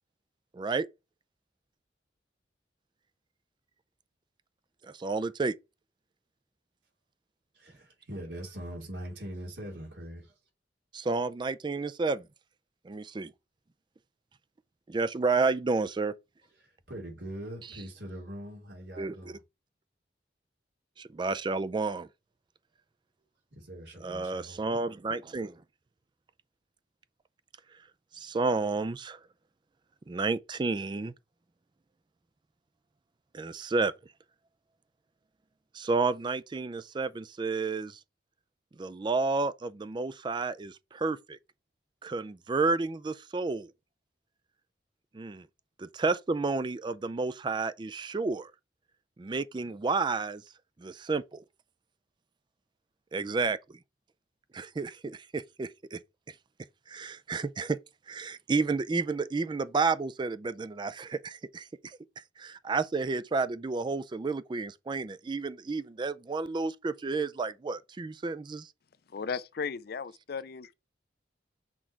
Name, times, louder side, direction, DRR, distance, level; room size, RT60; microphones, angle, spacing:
voice 1, 0.5-0.9 4.8-5.5 10.9-12.2 12.9-13.3 14.9-16.1 17.7-17.8 19.0-19.3 21.0-22.1 24.0-25.6 28.1-29.2 30.1-31.1 33.3-33.9 35.7-38.0 38.8-41.4 42.0-43.7 45.1-45.4 45.8-48.5 49.2-50.4 50.8-51.4 53.1-53.8 54.5-56.0 56.9-57.8 58.1-61.7 62.4-68.7, right 3 dB, 25° right, 0.3 m, -31 dB
voice 2, 7.5-10.3 16.6-19.4 23.6-24.6, equal, 75° right, 2.9 m, -42 dB
voice 3, 69.1-70.7, left 5 dB, 60° left, 0.5 m, -36 dB
6.0 x 3.7 x 4.5 m
head